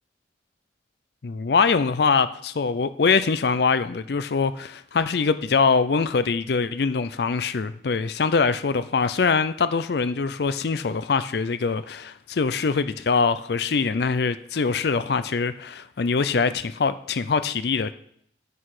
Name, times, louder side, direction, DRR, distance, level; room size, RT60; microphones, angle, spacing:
voice 1, 1.2-17.9, left 5 dB, 60° left, 0.5 m, -23 dB
9.9 x 8.1 x 4.8 m
head